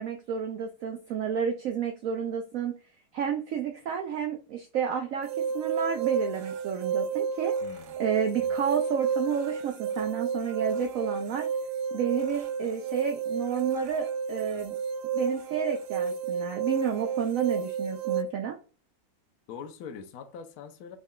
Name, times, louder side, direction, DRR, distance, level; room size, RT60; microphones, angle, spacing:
voice 1, 0.0-2.8 3.1-5.3 5.5-7.5 8.0-11.5 11.9-14.8 15.1-18.6, right 8 dB, 90° right, 0.7 m, -30 dB
sound 1, 5.2-18.2, right 6 dB, 70° right, 1.0 m, -31 dB
voice 2, 7.6-8.0 8.4-8.5 19.5-21.0, left 7 dB, 70° left, 0.9 m, -43 dB
5.0 x 2.2 x 3.6 m
omnidirectional pair, 2.0 m